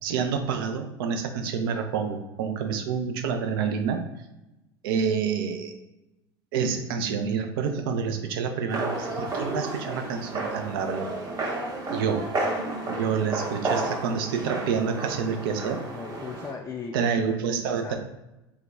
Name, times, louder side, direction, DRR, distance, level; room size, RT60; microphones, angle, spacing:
voice 1, 0.0-4.0 4.8-5.7 6.5-11.1 11.9-12.3 12.9-15.8 16.9-18.0, right 6 dB, 65° right, 6 dB, 0.5 m, -28 dB
sound 1, 8.7-16.5, right 2 dB, 30° right, 0.8 m, -32 dB
voice 2, 15.9-18.0, left 5 dB, 20° left, 1 dB, 0.3 m, -38 dB
2.7 x 2.2 x 3.5 m, 0.96 s
figure-of-eight pair, 75°, 13 cm